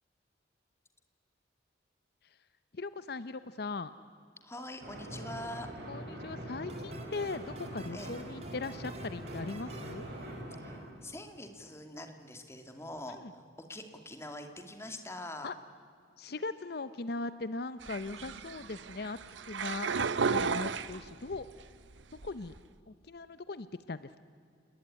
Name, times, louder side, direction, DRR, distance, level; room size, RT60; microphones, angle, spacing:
voice 1, 2.7-3.9 5.9-10.1 13.2-13.3 15.4-15.5 16.2-19.2 19.4-21.5 22.1-22.5 22.9-24.2, left 3 dB, 55° left, 14 dB, 0.7 m, -39 dB
voice 2, 4.4-5.7 7.9-8.1 10.6-15.5, left 1 dB, 15° left, 6 dB, 2.4 m, -44 dB
sound 1, 4.8-10.8, right 1 dB, 55° right, 6.2 m, -43 dB
sound 2, 6.7-11.1, right 3 dB, 35° right, 2.4 m, -53 dB
sound 3, 17.8-21.5 21.9-22.6, right 5 dB, 80° right, 0.8 m, -34 dB
29.5 x 20.0 x 9.9 m, 2.3 s
head